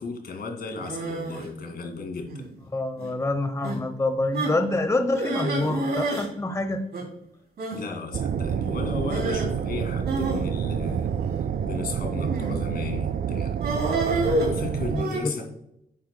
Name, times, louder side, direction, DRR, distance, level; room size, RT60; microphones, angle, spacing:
voice 1, 0.0-2.5 7.7-13.6 14.4-15.5, left 4 dB, 75° left, 3 dB, 2.3 m, -35 dB
sound 1, 0.8-1.5 2.3-2.6 3.0-3.1 3.6-3.8 4.3-4.6 5.1-6.3 6.5-6.6 6.9-7.0 7.6-7.8 9.1-9.5 10.1-11.4 12.2-12.6 13.6-15.2, right 2 dB, 85° right, 2.9 m, -28 dB
voice 2, 2.7-6.8 14.9-15.3, left 2 dB, 20° left, 7 dB, 0.9 m, -26 dB
sound 2, 8.1-15.0, right 7 dB, 60° right, 0.4 m, -28 dB
10.0 x 9.7 x 2.2 m, 0.75 s
cardioid pair, 95°, 16 cm